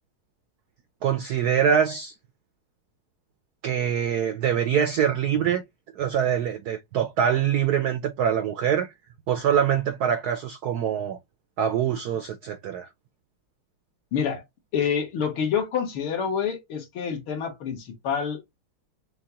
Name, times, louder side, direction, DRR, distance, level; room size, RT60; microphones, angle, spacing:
voice 1, 1.0-2.1 3.6-5.6 6.0-8.9 9.3-11.2 11.6-12.9, right 8 dB, 85° right, 0.8 m, -24 dB
voice 2, 14.1-14.4 14.7-18.4, left 7 dB, 75° left, 2.2 m, -27 dB
6.4 x 2.3 x 2.8 m
omnidirectional pair, 2.3 m